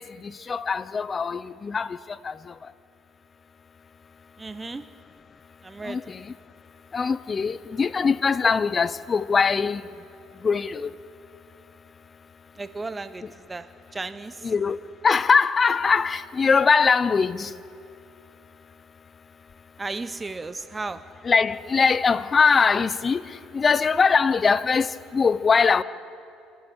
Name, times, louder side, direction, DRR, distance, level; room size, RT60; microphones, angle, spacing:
voice 1, 0.0-2.0 2.2-2.3 5.8-6.2 6.9-9.8 10.4-10.9 14.4-17.5 21.2-23.2 23.5-25.8, left 5 dB, 35° left, 0.7 m, -22 dB
voice 2, 4.4-5.0 5.6-6.1 12.5-14.5 19.8-21.3, right 3 dB, 20° right, 0.8 m, -35 dB
28.5 x 11.0 x 8.3 m
supercardioid pair, 80°, 0 cm